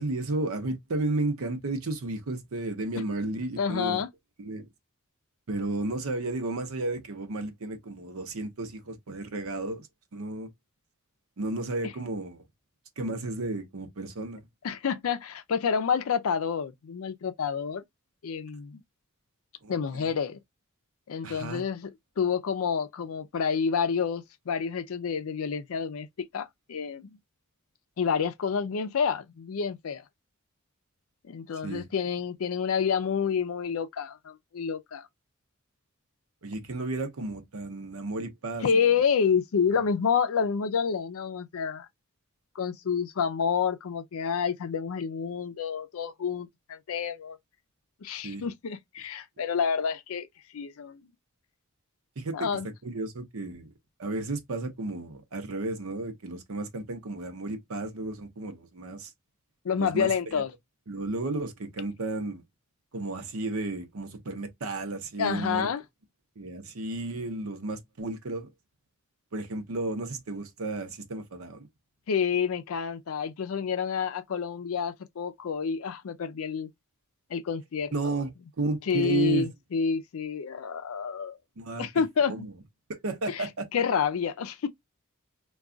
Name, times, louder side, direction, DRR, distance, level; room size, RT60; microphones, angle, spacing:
voice 1, 0.0-4.0 4.4-4.7 5.5-9.9 10.1-10.5 11.4-12.4 13.0-14.4 19.6-19.7 20.0-20.1 21.2-21.6 31.6-31.9 36.4-38.9 39.7-39.8 48.2-48.5 52.2-53.7 54.0-59.1 59.8-60.4 60.9-62.4 62.9-65.7 66.4-68.5 69.3-71.7 77.9-78.3 78.6-79.5 81.6-81.9 82.3-82.5 82.9-83.7, right 2 dB, 80° right, 0.7 m, -33 dB
voice 2, 3.6-4.1 14.6-17.8 18.2-18.8 19.7-20.4 21.1-26.1 26.3-27.2 28.0-30.0 31.2-35.0 38.6-41.9 42.6-47.4 48.0-50.3 50.5-51.0 52.3-52.7 59.6-60.5 65.2-65.8 72.1-76.7 77.3-78.2 78.9-81.4 81.8-82.5 83.3-84.7, left 6 dB, 75° left, 0.4 m, -29 dB
2.3 x 2.3 x 3.7 m
head